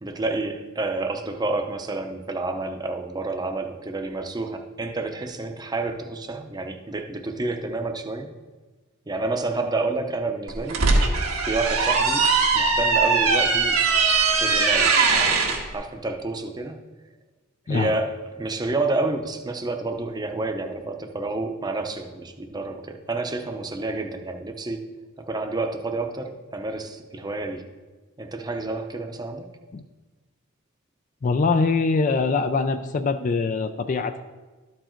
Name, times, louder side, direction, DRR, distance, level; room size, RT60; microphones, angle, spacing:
voice 1, 0.0-8.3 9.1-10.9 11.4-12.3 12.5-13.8 14.4-16.8 17.7-24.8 25.3-27.7 28.2-29.5, right 2 dB, 20° right, 5 dB, 0.6 m, -29 dB
sound 1, 10.5-15.6, right 4 dB, 90° right, 1.5 m, -20 dB
voice 2, 31.2-34.2, left 4 dB, 35° left, 10 dB, 0.3 m, -23 dB
12.5 x 4.6 x 4.4 m, 1.3 s
head